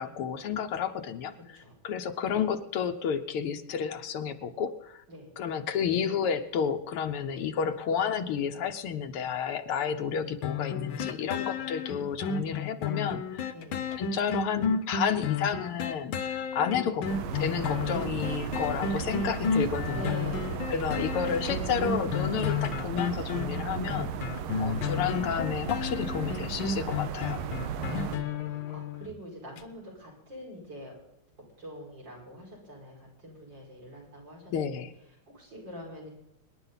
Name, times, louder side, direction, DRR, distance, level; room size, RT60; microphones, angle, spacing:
voice 1, 0.0-1.3 1.8-5.0 5.4-13.5 14.0-17.1 17.3-20.1 20.7-24.1 24.6-27.4 34.5-34.9, left 7 dB, 85° left, 7 dB, 1.9 m, -31 dB
sound 1, 10.4-29.1 29.6-29.7, left 6 dB, 70° left, 1.7 m, -32 dB
voice 2, 10.9-11.5 13.5-14.0 16.6-16.9 19.9-21.3 24.0-24.5 27.7-30.9 31.6-36.1, equal, 55° right, -2 dB, 6.4 m, -45 dB
sound 2, 17.0-28.2, right 7 dB, 75° right, 1.8 m, -35 dB
25.0 x 11.0 x 4.1 m, 0.85 s
omnidirectional pair, 2.4 m